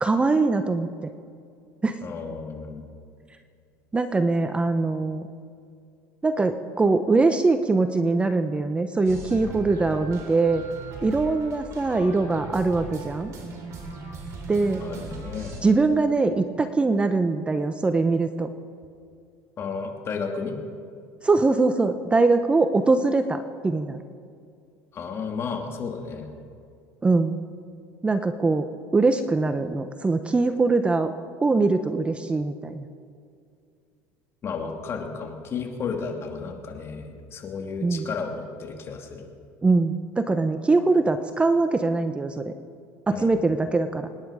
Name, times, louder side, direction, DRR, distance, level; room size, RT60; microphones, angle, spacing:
voice 1, 0.0-1.1 1.8-2.0 3.9-5.2 6.2-10.6 11.0-13.3 14.5-14.8 15.6-18.5 21.2-24.0 27.0-27.4 28.0-31.1 31.4-32.9 37.8-38.1 39.6-42.5 43.1-44.1, right 3 dB, 15° right, 9 dB, 0.8 m, -22 dB
voice 2, 2.0-2.8 14.8-15.6 19.6-20.6 24.9-26.3 34.4-39.3 43.1-43.4, left 5 dB, 40° left, 3 dB, 2.5 m, -33 dB
sound 1, 9.0-15.6, right 3 dB, 45° right, 3.6 m, -39 dB
25.5 x 10.5 x 5.0 m, 2.4 s
supercardioid pair, 115°, 7 cm